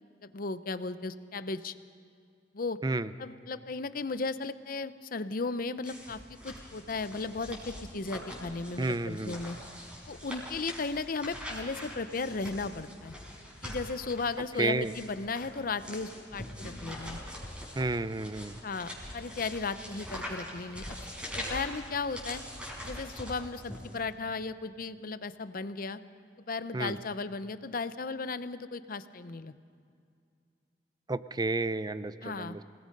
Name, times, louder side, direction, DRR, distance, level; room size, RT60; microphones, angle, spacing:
voice 1, 0.2-1.7 2.5-2.8 3.2-9.6 10.1-13.1 13.6-17.2 18.6-20.9 21.4-22.4 22.8-26.0 26.5-29.5 32.2-32.6, left 4 dB, 55° left, 13 dB, 0.7 m, -35 dB
sound 1, 5.8-24.0, equal, 5° right, 5.2 m, -43 dB
voice 2, 8.8-9.4 14.6-14.9 17.8-18.5 26.7-27.0 31.1-32.6, right 2 dB, 25° right, 13 dB, 0.5 m, -31 dB
27.0 x 19.0 x 5.3 m, 2.4 s
head